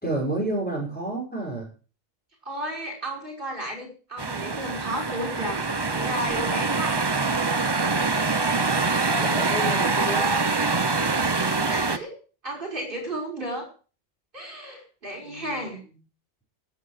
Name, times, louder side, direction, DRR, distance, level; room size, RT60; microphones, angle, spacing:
voice 1, 0.0-1.7 9.2-10.3 15.2-15.6, right 1 dB, 10° left, -2 dB, 5.4 m, -30 dB
voice 2, 2.4-7.0 9.6-10.4 11.2-12.1 12.4-13.7 14.3-15.8, right 1 dB, 50° right, 1 dB, 5.7 m, -34 dB
sound 1, 4.2-12.0, right 3 dB, 25° right, 0.7 m, -24 dB
16.0 x 7.6 x 6.5 m, 0.38 s
omnidirectional pair, 1.2 m